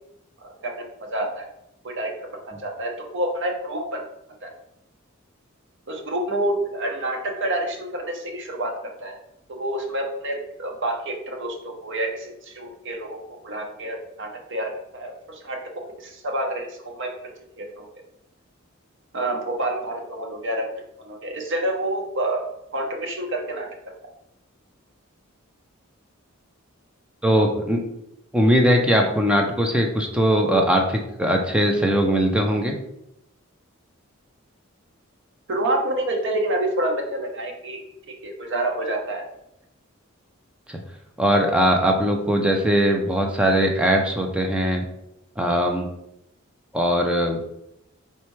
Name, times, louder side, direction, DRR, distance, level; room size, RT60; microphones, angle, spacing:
voice 1, 0.4-0.8 1.1-1.5 1.8-4.0 4.4-4.5 5.9-9.1 9.5-13.2 13.4-15.6 16.0-17.1 17.6-17.8 19.1-20.6 21.0-23.7 35.5-39.2, right 1 dB, 60° right, 1 dB, 0.8 m, -28 dB
voice 2, 27.2-27.8 28.3-32.7 40.7-40.8 41.2-44.8 45.4-45.9 46.7-47.4, equal, 5° right, 1 dB, 0.4 m, -20 dB
4.4 x 3.3 x 3.1 m, 0.82 s
head